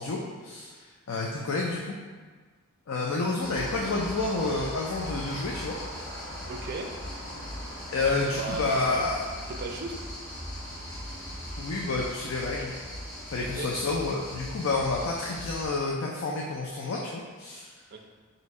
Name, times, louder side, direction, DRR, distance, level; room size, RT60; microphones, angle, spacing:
voice 1, 0.0-1.9 2.9-5.8 7.9-9.2 11.6-12.7 13.3-17.7, left 3 dB, 75° left, -2 dB, 0.4 m, -29 dB
sound 1, 3.4-15.7, equal, 15° left, 1.1 m, -39 dB
voice 2, 6.5-6.9 8.0-9.0 9.5-9.9 13.4-13.7 17.9-18.1, right 3 dB, 50° right, 3 dB, 0.4 m, -36 dB
3.5 x 2.8 x 4.1 m, 1.5 s
head